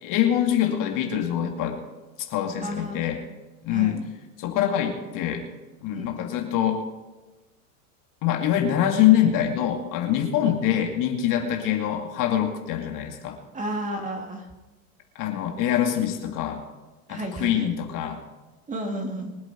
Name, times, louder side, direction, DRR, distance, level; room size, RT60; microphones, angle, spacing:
voice 1, 0.0-1.8 2.2-3.2 3.6-4.0 4.4-5.4 5.8-6.8 8.2-13.4 15.2-16.6 17.1-18.2, left 10 dB, 50° left, 3 dB, 2.4 m, -24 dB
voice 2, 2.6-3.0 3.7-4.0 5.9-6.3 10.4-10.6 13.5-14.5 17.1-17.7 18.7-19.3, right 1 dB, 20° right, 2 dB, 2.8 m, -32 dB
24.0 x 8.2 x 4.6 m, 1.1 s
hypercardioid pair, 105°, 42 cm